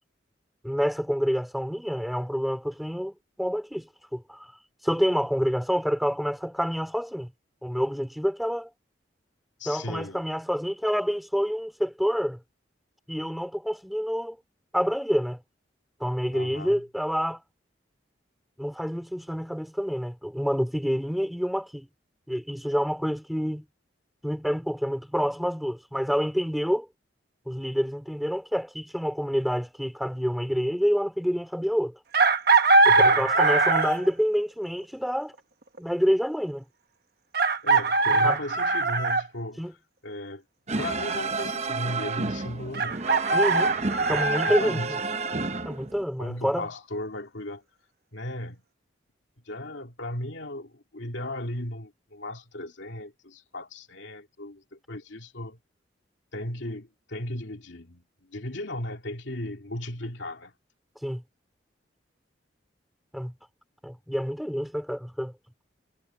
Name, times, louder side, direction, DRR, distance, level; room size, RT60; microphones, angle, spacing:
voice 1, 0.6-4.5 4.8-7.3 7.6-8.7 9.7-12.4 13.1-14.4 14.7-15.4 16.0-17.4 18.6-21.9 22.3-23.6 24.2-26.9 27.5-31.9 32.8-35.3 35.8-36.6 38.1-38.4 39.6-39.7 43.3-43.7 44.1-44.8 45.6-46.7 61.0-61.2 63.1-63.3 63.8-65.3, equal, ahead, 4.1 m, -27 dB
voice 2, 9.6-10.2 16.3-16.8 32.9-33.3 37.6-39.7 40.0-40.4 40.8-43.4 44.5-44.9 46.2-47.6 48.1-48.6 49.5-55.6 56.3-60.5, left 1 dB, 75° left, 2.4 m, -36 dB
Chicken rooster, 32.1-34.1 35.8-35.9 37.3-39.3 42.7-44.6, right 3 dB, 55° right, 1.3 m, -21 dB
sound 1, 40.7-46.0, right 4 dB, 35° right, 0.9 m, -31 dB
head